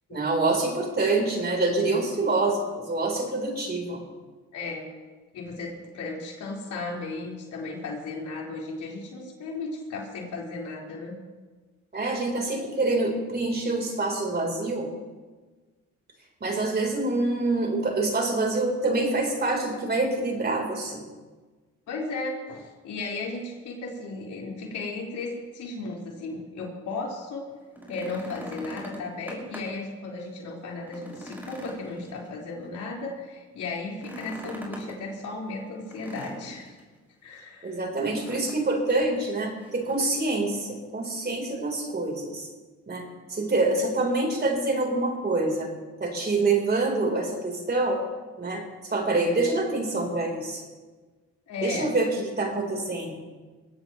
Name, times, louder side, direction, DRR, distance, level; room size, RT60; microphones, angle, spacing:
voice 1, 0.1-4.0 11.9-14.9 16.4-21.0 37.6-42.5 42.9-45.7 46.0-48.0 48.4-50.7 51.6-52.1 52.4-53.1, right 2 dB, 35° right, 1 dB, 4.2 m, -26 dB
voice 2, 4.5-4.9 5.3-11.1 21.9-27.5 27.9-36.8 37.2-37.8 51.5-51.9, left 3 dB, 75° left, -3 dB, 4.9 m, -35 dB
sound 1, 27.6-29.9 30.3-30.4 30.8-32.7 33.9-35.0 35.9-36.8 38.0-38.6 38.9-39.0 39.6-40.2 41.3-41.4, equal, 5° right, 5.6 m, -42 dB
22.5 x 17.0 x 3.2 m, 1.3 s
cardioid pair, 90°, 30 cm